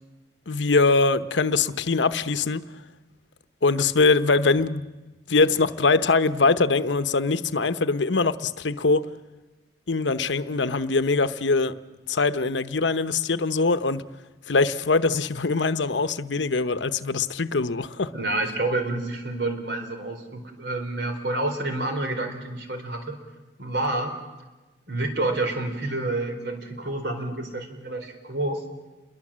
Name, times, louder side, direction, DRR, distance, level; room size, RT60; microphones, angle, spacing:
voice 1, 0.5-2.6 3.6-9.1 9.9-11.8 12.1-14.1 14.5-18.1, left 3 dB, 90° left, 12 dB, 0.9 m, -22 dB
voice 2, 18.1-23.2 23.6-24.2 24.9-28.6, right 2 dB, 70° right, 5 dB, 4.1 m, -28 dB
28.0 x 22.0 x 7.5 m, 1.2 s
head